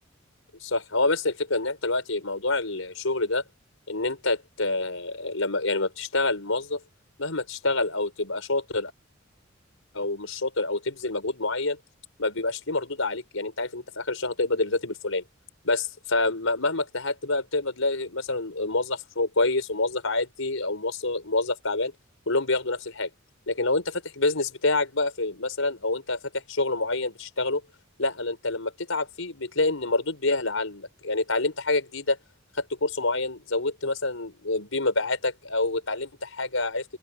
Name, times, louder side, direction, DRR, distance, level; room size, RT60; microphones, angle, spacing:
voice 1, 0.6-3.4 3.9-6.8 7.2-8.9 9.9-11.8 12.2-15.2 15.6-21.9 22.3-23.1 23.6-23.8 24.2-27.6 28.0-32.2 32.6-36.8, left 2 dB, 75° left, 5.4 m, -27 dB
open air
head